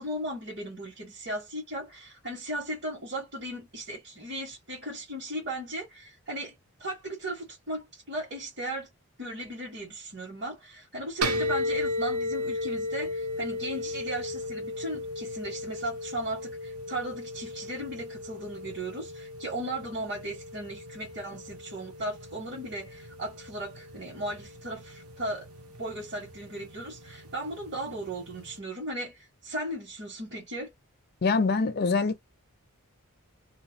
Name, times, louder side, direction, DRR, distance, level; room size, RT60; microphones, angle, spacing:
voice 1, 0.0-8.9 9.2-25.5 25.8-30.7, right 1 dB, 50° right, 1.4 m, -36 dB
sound 1, 11.2-28.6, left 2 dB, 75° right, 0.8 m, -36 dB
voice 2, 31.2-32.2, left 4 dB, 45° left, 0.5 m, -24 dB
2.7 x 2.2 x 2.8 m
head